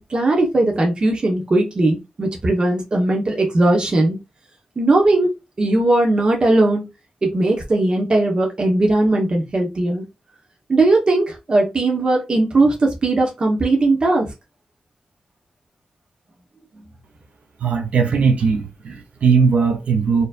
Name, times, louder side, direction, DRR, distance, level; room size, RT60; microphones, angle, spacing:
voice 1, 0.1-4.2 4.8-5.3 5.6-6.9 7.2-10.0 10.7-14.3, right 2 dB, 40° right, 1.2 m, -18 dB
voice 2, 17.6-20.3, right 5 dB, 85° right, 0.8 m, -18 dB
4.5 x 3.2 x 2.5 m
wide cardioid pair, 105°, 2 cm